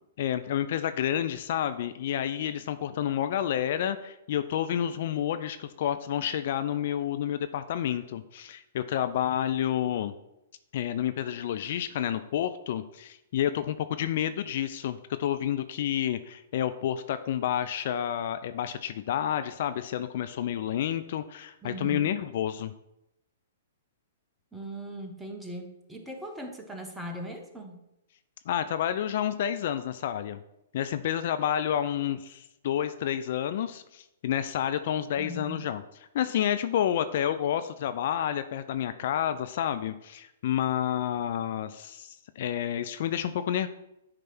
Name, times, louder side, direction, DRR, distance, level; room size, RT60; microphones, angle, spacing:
voice 1, 0.2-10.1 10.7-22.7 28.5-30.4 30.7-35.8 36.1-43.7, left 10 dB, 55° left, 10 dB, 0.4 m, -29 dB
voice 2, 21.6-22.1 24.5-27.8 35.2-35.7, right 1 dB, 5° right, 2 dB, 1.3 m, -39 dB
9.5 x 3.3 x 5.9 m, 0.86 s
hypercardioid pair, 120°, 0 cm